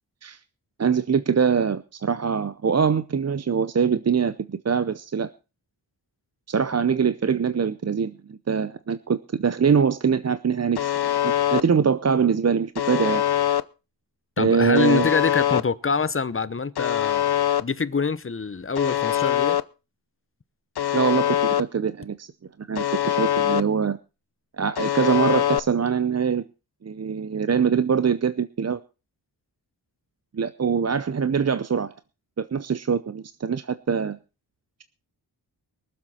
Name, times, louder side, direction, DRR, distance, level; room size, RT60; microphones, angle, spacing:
voice 1, 0.8-5.3 6.5-10.9 11.2-13.2 14.4-15.1 20.9-22.3 22.6-24.0 24.6-26.4 26.8-28.8 30.3-31.9 32.4-34.2, right 6 dB, 35° right, 0.7 m, -23 dB
Alarm, 10.8-11.6 12.8-13.6 14.8-15.6 16.8-17.6 18.8-19.6 20.8-21.6 22.8-23.6 24.8-25.6, left 11 dB, 60° left, 0.7 m, -23 dB
voice 2, 14.4-17.3 17.6-19.6, left 5 dB, 30° left, 0.9 m, -25 dB
23.0 x 7.8 x 4.3 m
wide cardioid pair, 80°, 43 cm